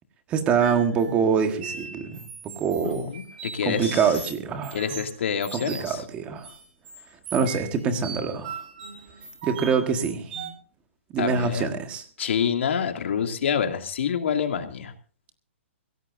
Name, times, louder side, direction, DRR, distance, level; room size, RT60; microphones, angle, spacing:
voice 1, 0.3-3.1 3.6-5.0 5.5-6.5 7.3-8.6 9.4-10.3 11.1-12.0, right 6 dB, 15° right, 7 dB, 1.6 m, -25 dB
sound 1, 0.6-6.0 6.4-10.5, right 6 dB, 50° right, 4.3 m, -39 dB
voice 2, 2.8-4.0 4.7-6.0 11.2-11.7 12.2-14.9, left 7 dB, 65° left, 5 dB, 2.5 m, -27 dB
22.5 x 16.5 x 2.7 m, 0.38 s
hypercardioid pair, 165°, 7 cm